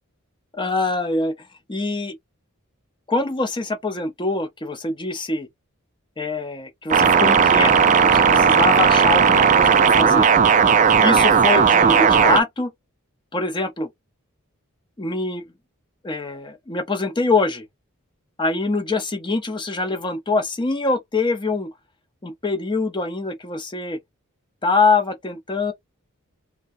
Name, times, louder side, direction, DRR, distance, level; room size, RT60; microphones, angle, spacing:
voice 1, 0.5-2.1 3.1-5.5 6.2-10.3 11.0-12.7 13.3-13.9 15.0-15.4 16.0-17.6 18.4-21.7 22.2-24.0 24.6-25.7, left 3 dB, 20° left, 0.6 m, -24 dB
sound 1, 6.9-12.4, right 6 dB, 35° right, 0.4 m, -15 dB
3.4 x 2.2 x 2.5 m
head